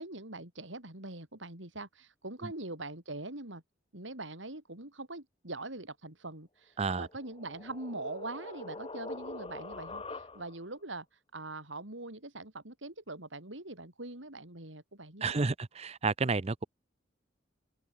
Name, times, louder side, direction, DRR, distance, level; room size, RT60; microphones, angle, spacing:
voice 1, 0.0-3.6 3.9-15.5, right 2 dB, 85° right, 5.7 m, -43 dB
voice 2, 6.8-7.1 15.2-16.6, right 4 dB, 35° right, 0.6 m, -31 dB
sound 1, 7.0-10.7, left 2 dB, 30° left, 3.9 m, -44 dB
open air
head